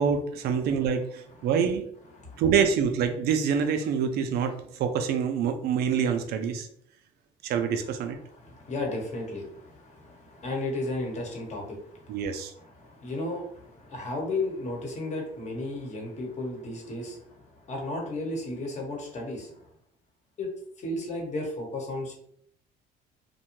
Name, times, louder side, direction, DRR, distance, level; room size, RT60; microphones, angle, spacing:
voice 1, 0.0-1.9 2.4-6.7 7.4-8.2 12.1-12.5, right 7 dB, 70° right, 7 dB, 0.4 m, -26 dB
voice 2, 8.4-12.2 12.8-19.5 20.4-20.5 20.8-22.1, left 2 dB, 45° left, -1 dB, 1.0 m, -34 dB
2.6 x 2.1 x 2.9 m, 0.67 s
cardioid pair, 110°, 17 cm